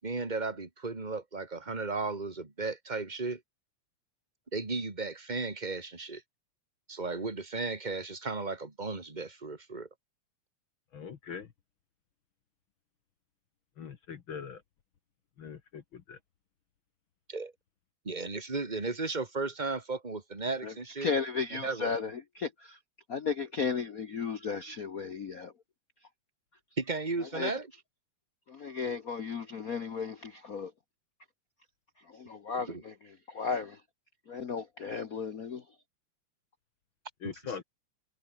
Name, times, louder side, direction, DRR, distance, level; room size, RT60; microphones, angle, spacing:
voice 1, 0.0-3.4 4.5-6.2 6.9-9.9 17.3-17.5 18.0-21.1 21.6-22.0 26.8-27.7 32.7-32.8 37.2-37.3, right 3 dB, 15° right, 2.5 m, -35 dB
voice 2, 10.9-11.5 13.8-14.6 15.4-16.2 37.2-37.6, left 6 dB, 50° left, 1.9 m, -42 dB
voice 3, 21.0-22.8 23.1-25.5 27.3-27.5 28.5-30.7 32.0-33.8 34.3-35.6, left 5 dB, 80° left, 0.7 m, -35 dB
omnidirectional pair, 3.3 m